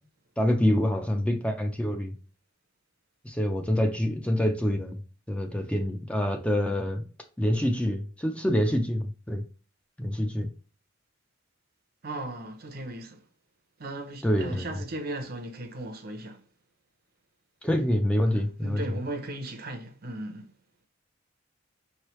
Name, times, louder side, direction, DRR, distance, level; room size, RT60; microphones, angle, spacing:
voice 1, 0.4-2.1 3.2-5.0 5.3-7.0 7.4-9.4 10.0-10.5 14.2-14.7 17.6-18.8, equal, 5° left, 0.5 m, -26 dB
voice 2, 12.0-13.3 13.8-16.5 18.3-20.5, right 1 dB, 50° right, 0.7 m, -37 dB
5.4 x 3.2 x 3.0 m
head